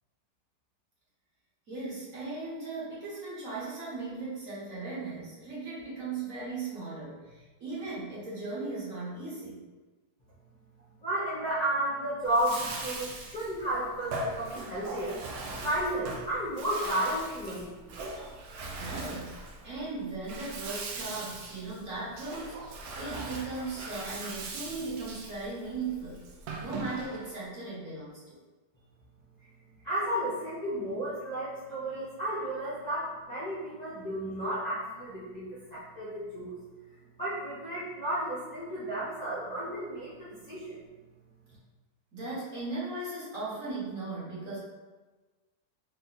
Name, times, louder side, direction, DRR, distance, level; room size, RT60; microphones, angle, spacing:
voice 1, 1.7-9.6 18.8-26.2 26.6-28.4 42.1-44.6, right 3 dB, 50° right, -7 dB, 1.4 m, -37 dB
voice 2, 11.0-17.9 29.8-36.5 37.2-40.8, right 1 dB, 35° left, -11 dB, 0.7 m, -33 dB
Bathtub (filling or washing), 12.2-27.4, right 2 dB, 70° right, 1.0 m, -40 dB
3.4 x 2.8 x 3.8 m, 1.3 s
omnidirectional pair, 1.9 m